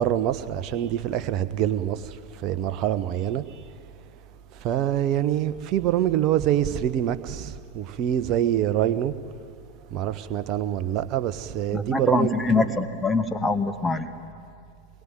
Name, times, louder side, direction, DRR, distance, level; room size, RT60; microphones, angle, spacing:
voice 1, 0.0-2.2 2.4-3.4 4.6-9.1 9.9-12.4, right 11 dB, 40° right, 1.1 m, -25 dB
voice 2, 11.7-14.1, left 3 dB, 10° left, 1.6 m, -24 dB
26.5 x 21.5 x 9.2 m
figure-of-eight pair, 90°, 0 cm